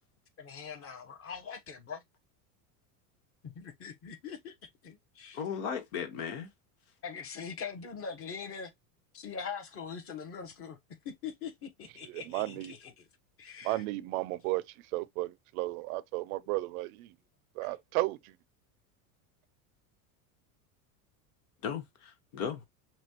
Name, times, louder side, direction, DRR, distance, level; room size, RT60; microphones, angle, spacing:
voice 1, 0.4-2.0 3.4-4.5 4.8-5.4 7.0-8.7 9.1-10.8 11.0-13.1 13.4-13.8 17.6-17.7, left 6 dB, 30° left, 1.1 m, -42 dB
voice 2, 5.3-6.5 21.6-22.6, left 7 dB, 80° left, 1.4 m, -36 dB
voice 3, 12.0-12.7 13.6-14.6 14.9-17.1 17.6-18.2, right 19 dB, 75° right, 0.5 m, -33 dB
6.0 x 2.4 x 2.9 m
supercardioid pair, 130°, 43 cm